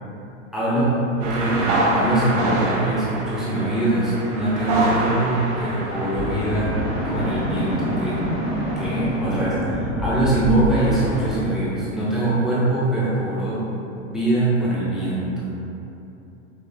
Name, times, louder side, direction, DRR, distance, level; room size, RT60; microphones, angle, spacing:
voice 1, 0.5-6.7 7.1-8.2 8.8-13.7 14.1-15.5, right 1 dB, ahead, -10 dB, 0.3 m, -23 dB
sound 1, 1.2-8.9, right 2 dB, 70° right, 0.9 m, -27 dB
sound 2, 6.1-11.3, equal, 85° left, 1.1 m, -26 dB
5.2 x 2.1 x 2.5 m, 2.9 s
hypercardioid pair, 130°, 38 cm